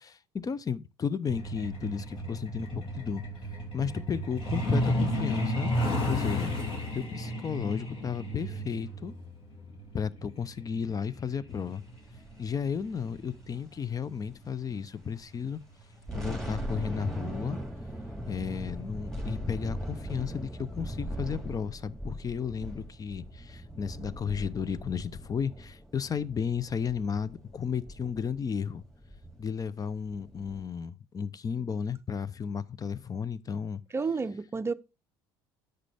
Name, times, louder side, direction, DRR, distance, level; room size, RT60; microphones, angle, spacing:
voice 1, 0.3-3.2 3.7-5.7 6.1-6.5 6.9-9.1 9.9-11.8 12.4-15.6 16.1-17.6 18.3-28.8 29.4-33.8, left 6 dB, 30° left, 0.7 m, -33 dB
Truck, 1.3-13.6 14.8-15.0 15.4-15.6 15.9-16.2 16.5-16.6 17.1-17.2, equal, 45° left, 2.9 m, -33 dB
sound 1, 12.0-14.8 15.1-15.3 15.8-30.6, equal, 5° left, 3.0 m, -40 dB
voice 2, 33.9-34.7, right 4 dB, 20° right, 0.6 m, -30 dB
9.8 x 6.7 x 3.5 m
hypercardioid pair, 70°, 12 cm